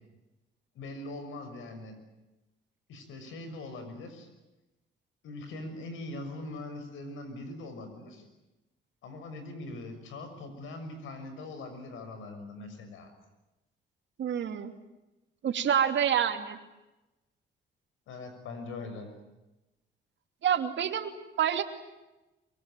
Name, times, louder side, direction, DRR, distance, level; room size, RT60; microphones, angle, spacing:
voice 1, 0.7-2.0 2.9-4.3 5.2-8.2 9.0-13.1 18.1-19.1, left 2 dB, 85° left, 8 dB, 6.4 m, -41 dB
voice 2, 14.2-14.7 15.4-16.6 20.4-21.6, right 9 dB, 65° right, 6 dB, 2.8 m, -27 dB
24.5 x 23.5 x 9.2 m, 1.0 s
cardioid pair, 90°, 20 cm